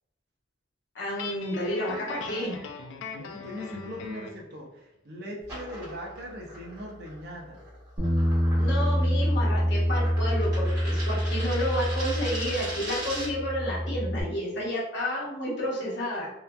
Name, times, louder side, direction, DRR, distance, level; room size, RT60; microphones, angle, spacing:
voice 1, 0.9-2.6 8.5-16.3, equal, 65° left, -5 dB, 1.0 m, -31 dB
Guitar, 1.2-4.4, left 5 dB, 85° left, 0.4 m, -40 dB
voice 2, 3.0-7.6, equal, 60° right, 0 dB, 0.6 m, -40 dB
sound 1, 5.4-13.5, equal, 20° right, 1.3 m, -40 dB
Bass guitar, 8.0-12.7 13.0-14.2, equal, 35° right, 1.4 m, -26 dB
2.8 x 2.5 x 2.2 m, 0.86 s
head